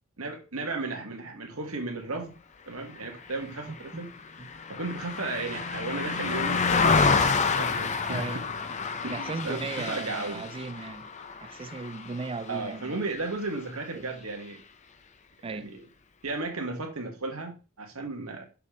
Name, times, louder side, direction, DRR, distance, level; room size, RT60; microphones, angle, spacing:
voice 1, 0.2-2.3 2.7-4.1 4.7-7.1 7.4-8.4 9.0-10.4 12.5-14.6 15.4-15.8 16.2-18.5, right 3 dB, 75° right, 1.7 m, -35 dB
Car passing by, 3.3-12.8 13.2-13.4, left 4 dB, 35° left, 0.6 m, -29 dB
voice 2, 3.7-4.0 4.4-4.5 8.1-8.5 9.1-11.1 11.4-13.0 13.9-14.1 15.4-15.7, right 4 dB, 25° right, 0.4 m, -37 dB
6.7 x 5.4 x 3.8 m
head